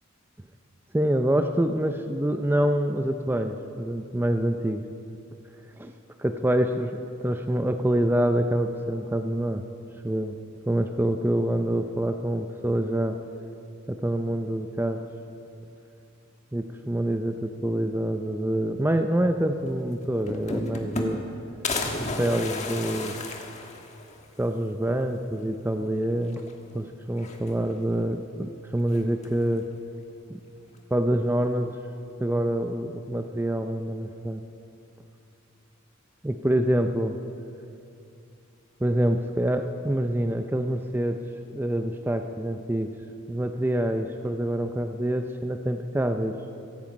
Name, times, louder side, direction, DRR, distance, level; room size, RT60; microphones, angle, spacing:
voice 1, 0.9-4.8 5.7-5.9 6.2-7.0 7.2-9.6 10.0-10.4 10.7-13.2 13.9-15.0 16.5-21.2 22.0-23.2 24.4-26.4 26.7-29.7 30.3-30.4 30.9-31.8 32.2-34.4 36.2-37.2 38.8-41.2 41.5-42.9 43.3-46.4, right 1 dB, 10° right, 6 dB, 0.5 m, -26 dB
sound 1, 19.7-19.8 20.0-21.3 21.6-24.2 24.7-24.8 25.0-25.1 26.3-26.7 27.1-27.8 28.9-29.5, left 3 dB, 35° left, 1.4 m, -33 dB
16.5 x 16.0 x 5.3 m, 2.6 s
head